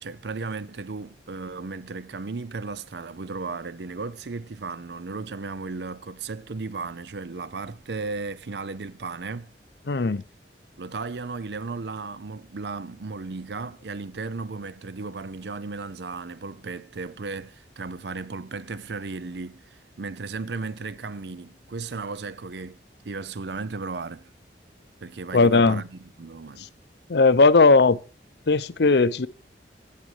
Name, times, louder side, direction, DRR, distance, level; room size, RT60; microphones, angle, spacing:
voice 1, 0.0-9.5 10.8-22.8 23.0-24.3 25.0-26.7, right 4 dB, 70° right, 0.6 m, -35 dB
voice 2, 9.9-10.2 25.3-25.8 27.1-28.0 28.5-29.3, left 3 dB, 70° left, 0.7 m, -17 dB
13.0 x 7.5 x 4.8 m
head